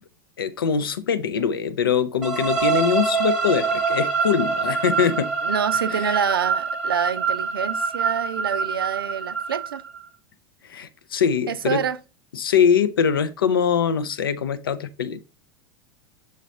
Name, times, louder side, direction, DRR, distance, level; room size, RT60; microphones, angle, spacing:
voice 1, 0.4-5.3 5.9-6.2 10.6-11.8 12.3-15.2, left 7 dB, 70° left, 0.5 m, -23 dB
sound 1, 2.2-10.0, right 5 dB, 5° right, 1.0 m, -25 dB
voice 2, 5.4-9.8 11.5-12.0, right 7 dB, 75° right, 0.4 m, -27 dB
6.5 x 4.0 x 3.9 m
figure-of-eight pair, 85°, 12 cm